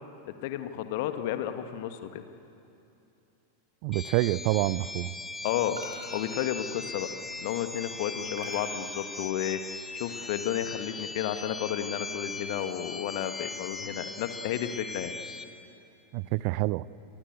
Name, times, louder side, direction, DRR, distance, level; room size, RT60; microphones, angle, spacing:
voice 1, 0.4-2.2 5.4-5.8 6.1-7.1 7.4-9.6 9.9-15.1, left 11 dB, 50° left, 8 dB, 1.8 m, -32 dB
voice 2, 3.8-5.1 16.1-16.9, right 20 dB, 45° right, 20 dB, 0.6 m, -27 dB
sound 1, 3.9-15.4, left 3 dB, 10° left, 1.9 m, -39 dB
sound 2, 4.2-4.8 5.8-7.4 8.4-10.1, right 2 dB, 70° right, 5.8 m, -48 dB
29.0 x 22.5 x 8.3 m, 2.7 s
figure-of-eight pair, 90°, 0 cm